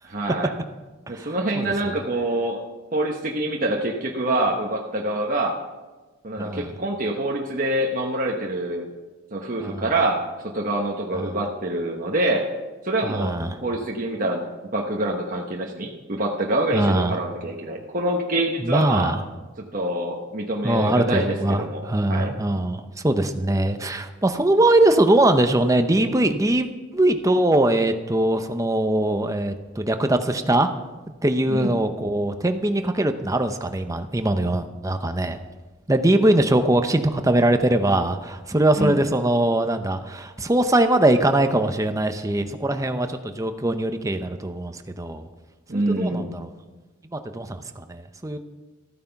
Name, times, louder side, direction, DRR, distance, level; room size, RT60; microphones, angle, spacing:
voice 1, 0.0-0.5 1.1-2.6 2.9-5.6 6.2-8.9 9.3-10.2 10.5-12.5 12.8-13.3 13.6-14.5 14.7-19.1 19.6-21.8 22.1-22.3 31.5-31.8 38.8-39.0 45.7-46.3, right 1 dB, 40° right, 0 dB, 1.1 m, -25 dB
voice 2, 1.1-1.7 6.4-6.7 9.6-9.9 11.1-11.4 13.0-13.6 16.7-17.2 18.6-19.2 20.6-26.7 26.9-30.7 31.2-35.4 35.9-45.3 45.7-46.5 47.1-48.4, right 1 dB, 15° right, 8 dB, 0.7 m, -22 dB
14.0 x 9.2 x 5.8 m, 1.2 s
head